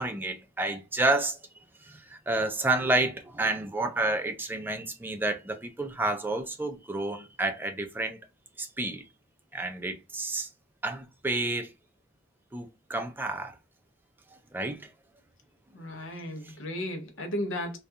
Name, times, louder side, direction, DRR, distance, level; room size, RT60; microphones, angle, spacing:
voice 1, 0.0-1.4 1.8-8.2 8.6-9.0 9.5-10.5 10.8-11.7 12.5-13.6 14.5-14.9 16.4-16.5, right 2 dB, 10° right, 0.3 m, -30 dB
voice 2, 15.7-17.8, left 1 dB, 70° left, 0.6 m, -34 dB
2.3 x 2.3 x 2.6 m
head